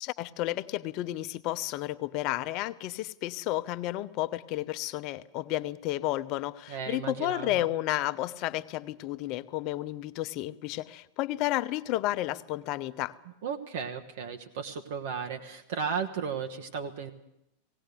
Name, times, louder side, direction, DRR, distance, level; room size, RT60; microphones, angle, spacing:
voice 1, 0.0-13.1, left 16 dB, 40° left, 14 dB, 0.8 m, -32 dB
voice 2, 6.7-7.6 13.4-17.1, right 6 dB, 55° right, 4 dB, 1.3 m, -35 dB
18.0 x 18.0 x 8.2 m, 0.85 s
figure-of-eight pair, 90°, 0 cm